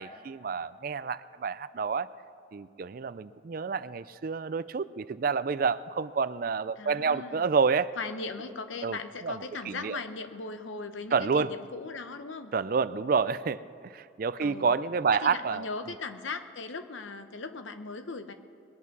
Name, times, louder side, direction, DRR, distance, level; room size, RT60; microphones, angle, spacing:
voice 1, 0.0-2.1 2.5-7.9 8.8-9.0 9.2-10.0 11.1-11.5 12.5-15.7, right 5 dB, 45° right, 16 dB, 0.4 m, -29 dB
voice 2, 6.8-7.5 8.0-12.5 14.4-14.8 15.2-18.3, left 4 dB, 75° left, 8 dB, 0.9 m, -38 dB
21.0 x 8.3 x 6.1 m, 2.7 s
head